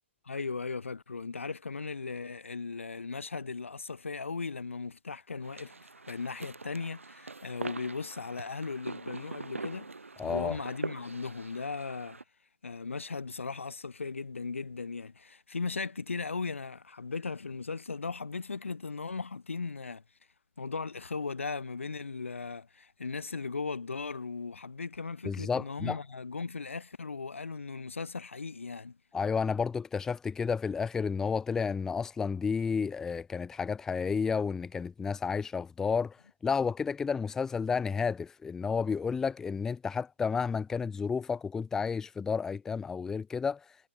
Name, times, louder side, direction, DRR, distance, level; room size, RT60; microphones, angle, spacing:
voice 1, 0.2-5.8 6.1-9.9 10.2-12.2 12.6-20.0 20.6-29.0, left 4 dB, 75° left, 3.1 m, -37 dB
sound 1, 5.4-12.2, right 3 dB, 80° right, 1.9 m, -43 dB
voice 2, 10.2-10.6 25.2-26.0 29.1-36.2 36.4-43.6, left 5 dB, 5° left, 0.7 m, -31 dB
figure-of-eight pair, 140°, 7 cm